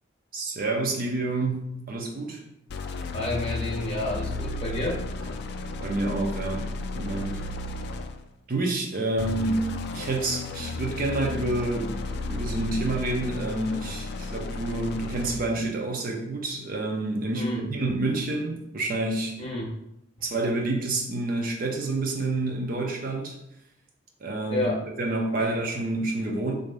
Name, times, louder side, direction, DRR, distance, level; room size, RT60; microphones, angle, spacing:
voice 1, 0.3-2.4 5.8-7.4 8.5-19.4 20.2-23.4 24.2-24.7 25.0-26.5, right 2 dB, 45° right, 1 dB, 0.6 m, -28 dB
sound 1, 2.7-8.3 9.2-15.6, left 2 dB, 55° left, 0.3 m, -34 dB
voice 2, 3.1-5.3 17.3-17.6 19.4-19.8 24.5-24.8 25.4-25.5, left 2 dB, 30° left, -3 dB, 1.0 m, -30 dB
4.0 x 2.6 x 3.4 m, 0.80 s
head